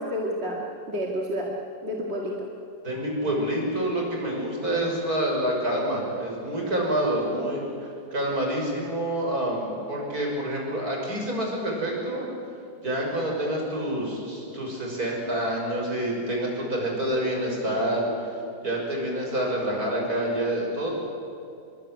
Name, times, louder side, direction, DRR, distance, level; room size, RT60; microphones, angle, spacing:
voice 1, 0.0-1.5 1.8-2.5, equal, 40° right, -1 dB, 2.4 m, -30 dB
voice 2, 2.8-7.7 8.1-12.3 12.8-18.1 18.6-20.9, right 1 dB, 60° right, -1 dB, 6.8 m, -27 dB
26.0 x 23.0 x 9.4 m, 2.6 s
omnidirectional pair, 1.8 m